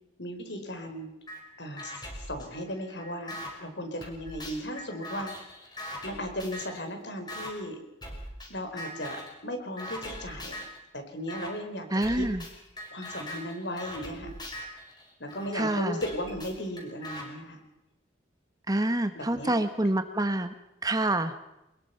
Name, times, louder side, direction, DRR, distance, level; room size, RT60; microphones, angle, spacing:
voice 1, 0.2-1.1 1.6-5.3 6.0-7.8 8.5-9.2 9.4-10.6 10.9-12.3 12.9-14.3 15.2-17.6 19.1-19.5, equal, 65° left, 5 dB, 4.8 m, -36 dB
sound 1, 1.3-1.4 1.8-3.5 4.0-6.8 7.3-7.5 8.0-8.5 8.8-9.4 9.8-10.8 11.3-11.5 12.0-15.5 16.0-17.2, left 1 dB, 20° left, 5.2 m, -41 dB
voice 2, 11.9-12.4 15.5-16.0 18.7-20.5 20.8-21.3, right 1 dB, 20° right, 9 dB, 1.3 m, -27 dB
23.5 x 21.5 x 5.8 m, 0.92 s
head